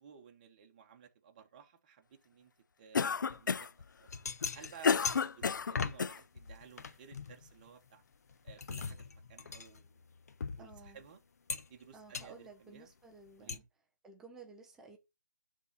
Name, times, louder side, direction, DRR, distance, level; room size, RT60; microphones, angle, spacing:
voice 1, 0.0-2.5 2.8-3.7 4.0-4.1 4.5-8.0 8.4-10.0 10.6-11.2 11.7-12.9 13.4-13.7, right 7 dB, 25° right, 1.2 m, -56 dB
Cough, 2.9-3.8 4.4-6.2, left 6 dB, 80° left, 0.4 m, -31 dB
sound 1, 3.3-3.4 3.9-6.1 6.4-7.9 8.3-11.1 11.5-11.9 12.1-12.3 13.5-13.6, left 5 dB, 55° left, 0.8 m, -40 dB
voice 2, 10.6-11.0 11.9-13.6 14.0-15.0, right 4 dB, 5° right, 0.4 m, -54 dB
11.0 x 3.8 x 4.1 m
hypercardioid pair, 165°, 10 cm